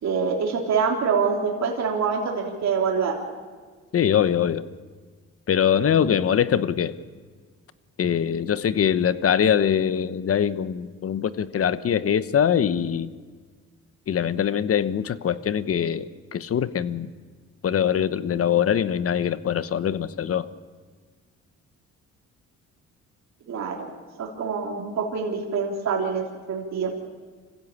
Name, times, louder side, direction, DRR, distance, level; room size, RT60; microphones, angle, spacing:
voice 1, 0.0-3.3 23.5-23.9 24.2-26.9, right 5 dB, 65° right, -1 dB, 3.5 m, -25 dB
voice 2, 3.9-4.7 5.5-6.9 8.0-13.1 14.1-17.1 17.6-20.5, left 8 dB, 50° left, 14 dB, 1.1 m, -23 dB
25.5 x 16.0 x 8.7 m, 1.5 s
cardioid pair, 90°, 30 cm